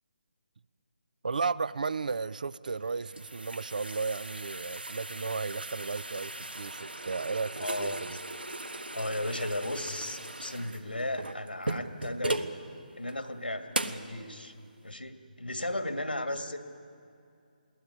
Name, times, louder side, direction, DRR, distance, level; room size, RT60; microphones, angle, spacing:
voice 1, 1.2-8.2, right 4 dB, 55° right, 20 dB, 0.6 m, -34 dB
sound 1, 2.7-12.6 13.1-13.2 13.7-14.1, right 2 dB, 80° right, 1.4 m, -38 dB
voice 2, 7.6-8.2 8.9-12.6 13.0-14.5 14.8-16.6, left 1 dB, 85° left, 6 dB, 2.2 m, -35 dB
20.5 x 18.0 x 9.8 m, 2.4 s
figure-of-eight pair, 150°, 5 cm